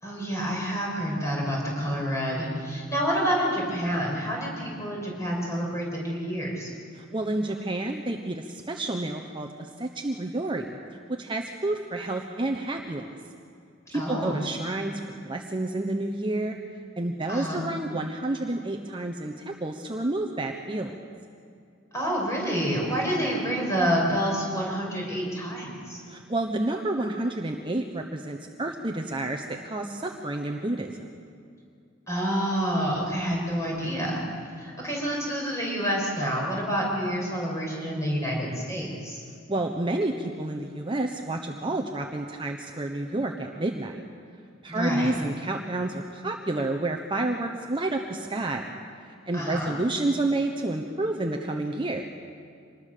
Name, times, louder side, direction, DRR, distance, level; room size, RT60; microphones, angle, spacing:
voice 1, 0.0-6.7 13.9-14.4 17.3-17.6 21.9-26.0 32.1-34.2 34.6-39.2 44.7-45.1 49.3-49.7, equal, 15° left, -2 dB, 6.2 m, -28 dB
voice 2, 6.9-10.8 11.1-13.2 13.9-14.9 15.2-16.6 17.0-20.9 26.1-31.0 39.5-44.0 44.6-48.8 49.3-52.1, right 2 dB, 25° right, 3 dB, 1.0 m, -29 dB
25.0 x 20.0 x 6.8 m, 2.5 s
head